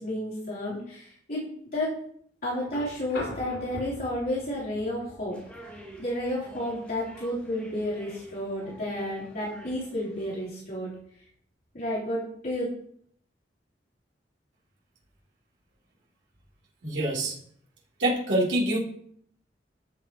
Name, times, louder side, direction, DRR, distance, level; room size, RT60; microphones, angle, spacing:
voice 1, 0.0-1.4 1.7-1.9 2.4-5.4 6.0-10.9 11.7-12.7, left 1 dB, 55° left, -9 dB, 3.6 m, -31 dB
sound 1, 2.6-10.7 12.1-12.2, left 1 dB, 85° left, 4.6 m, -45 dB
sound 2, 5.3-10.4, equal, 5° left, 2.5 m, -49 dB
voice 2, 16.8-17.4 18.0-18.8, right 1 dB, 85° right, -6 dB, 3.1 m, -25 dB
13.5 x 7.2 x 3.0 m, 0.64 s
head